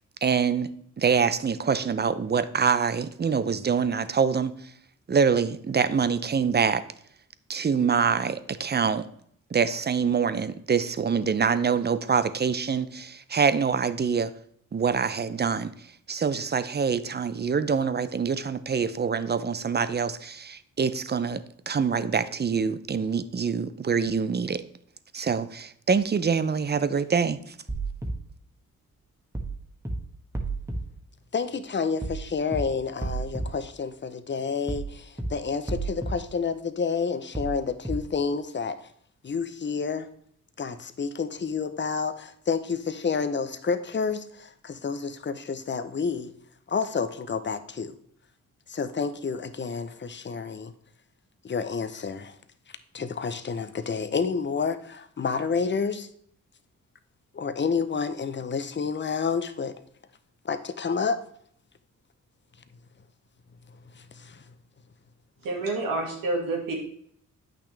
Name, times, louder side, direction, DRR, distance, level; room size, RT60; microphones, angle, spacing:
voice 1, 0.2-0.7 1.0-4.5 5.1-6.8 7.5-9.1 9.5-14.3 14.7-15.7 16.1-24.6 25.1-27.5, right 6 dB, 30° right, 0.6 m, -25 dB
sound 1, 27.7-28.1 29.3-29.5 29.8-30.0 30.3-30.8 32.0-32.2 32.5-32.6 33.0-33.5 34.7-34.9 35.2-35.3 35.7-36.1 37.3-37.5 37.8-38.0, right 3 dB, 10° right, 1.4 m, -30 dB
voice 2, 31.3-38.9 39.2-40.1 40.6-46.3 46.7-47.9 48.7-50.7 51.4-52.4 52.9-56.1 57.3-59.7 60.4-61.2 63.9-64.4, left 5 dB, 35° left, 0.7 m, -29 dB
voice 3, 65.4-66.7, right 2 dB, 85° right, 2.0 m, -28 dB
8.5 x 5.9 x 3.3 m
cardioid pair, 65°, 33 cm